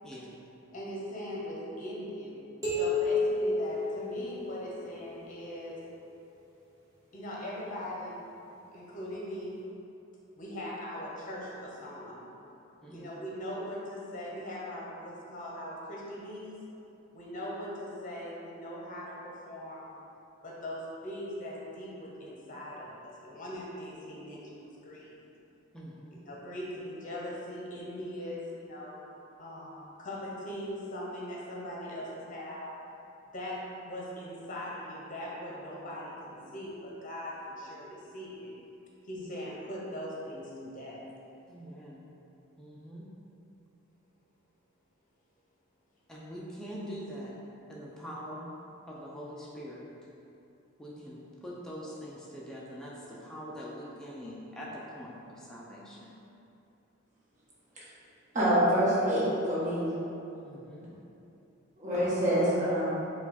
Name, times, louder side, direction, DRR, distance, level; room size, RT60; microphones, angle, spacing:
voice 1, 0.7-2.4 2.7-5.8 7.1-8.2 8.7-9.6 10.4-12.2 12.9-16.6 17.1-19.9 20.4-25.2 26.1-29.1 29.4-32.7 33.3-38.5 39.0-41.0, equal, 40° left, -4 dB, 0.8 m, -40 dB
sound 1, 2.6-5.0, left 2 dB, 15° right, 1.1 m, -30 dB
voice 2, 25.7-26.2 41.5-42.0 42.6-43.1 46.1-47.3 47.7-48.5 48.9-49.9 50.8-56.1 60.4-60.9, equal, 5° left, -6 dB, 0.4 m, -43 dB
voice 3, 58.3-59.9 61.8-62.9, equal, 35° right, -9 dB, 1.2 m, -26 dB
4.7 x 2.3 x 4.0 m, 2.8 s
head